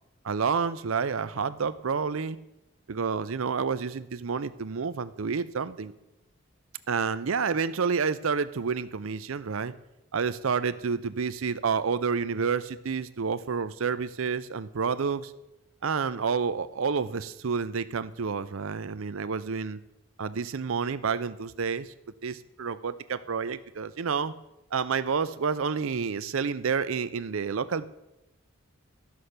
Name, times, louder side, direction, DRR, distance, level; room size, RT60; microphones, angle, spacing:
voice 1, 0.2-2.4 2.9-5.9 6.9-9.7 10.1-15.3 15.8-19.8 20.2-21.9 22.2-24.3 24.7-27.9, right 5 dB, 75° right, 14 dB, 0.6 m, -29 dB
12.5 x 5.7 x 6.6 m, 0.94 s
head